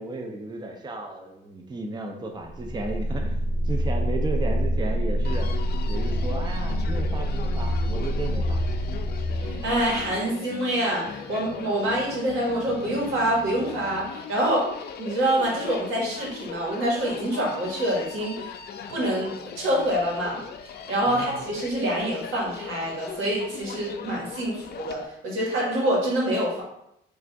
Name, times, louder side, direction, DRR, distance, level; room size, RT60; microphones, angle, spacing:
voice 1, 0.0-3.4 3.6-5.5 5.9-8.6 21.1-21.4, right 3 dB, 20° right, 3 dB, 0.6 m, -34 dB
sound 1, 2.5-10.1, equal, 10° left, 0.8 m, -26 dB
Human voice, 5.2-25.1, left 7 dB, 55° left, 0.4 m, -39 dB
voice 2, 9.4-14.6 15.0-18.5 18.9-20.4 20.9-26.6, right 1 dB, 90° right, -3 dB, 1.5 m, -26 dB
3.3 x 2.5 x 4.5 m, 0.79 s
cardioid pair, 90°, 20 cm